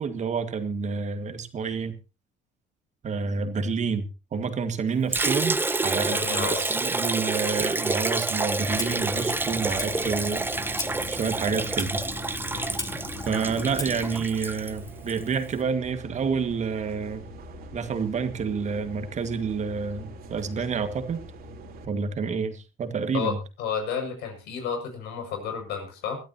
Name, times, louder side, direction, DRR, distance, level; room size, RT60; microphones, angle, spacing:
voice 1, 0.0-2.0 3.0-10.8 11.1-12.0 13.3-17.2 17.7-21.2 21.8-23.4, right 5 dB, 45° right, 9 dB, 2.0 m, -29 dB
Liquid, 5.1-15.2, right 2 dB, 10° right, 0.8 m, -28 dB
voice 2, 5.9-6.8 12.5-12.8 23.1-26.2, left 7 dB, 90° left, 4 dB, 6.6 m, -32 dB
Clock, 8.6-14.2, left 3 dB, 20° left, 3.0 m, -37 dB
sound 1, 9.5-21.8, right 2 dB, 65° right, 3.1 m, -43 dB
21.5 x 12.5 x 2.9 m, 0.31 s
cardioid pair, 110°, 17 cm